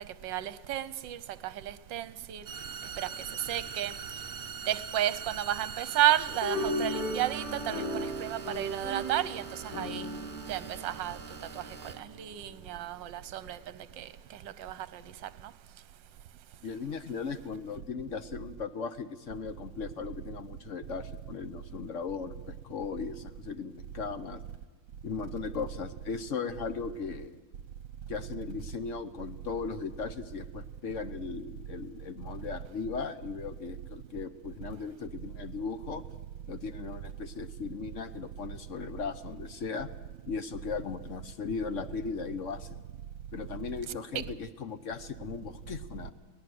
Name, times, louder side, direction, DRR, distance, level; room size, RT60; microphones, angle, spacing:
voice 1, 0.0-2.4 3.0-3.1 3.5-3.9 4.7-10.1 10.5-11.2 12.0-13.6 14.0-14.1 14.6-15.0 44.1-44.2, right 12 dB, 65° right, 1.5 m, -32 dB
sound 1, 2.5-12.0, right 6 dB, 35° right, 0.8 m, -42 dB
sound 2, 6.4-12.0, equal, 90° left, 6.6 m, -36 dB
voice 2, 16.6-24.4 25.0-27.4 28.1-36.0 36.5-39.9 40.3-42.8 43.3-46.1, left 5 dB, 55° left, 0.8 m, -37 dB
23.0 x 18.0 x 7.8 m
omnidirectional pair, 2.3 m